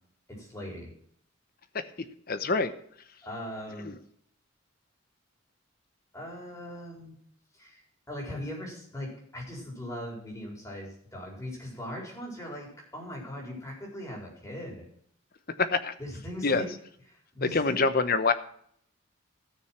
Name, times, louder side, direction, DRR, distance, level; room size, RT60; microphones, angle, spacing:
voice 1, 0.3-0.9 3.2-3.9 6.1-7.2 7.5-14.9 16.0-16.7 17.1-17.8, left 1 dB, 15° left, -2 dB, 4.4 m, -40 dB
voice 2, 2.3-2.7 3.8-4.0 15.6-15.9 16.4-16.6 17.4-18.3, left 4 dB, 45° left, 11 dB, 0.9 m, -25 dB
14.0 x 6.7 x 5.9 m, 0.65 s
head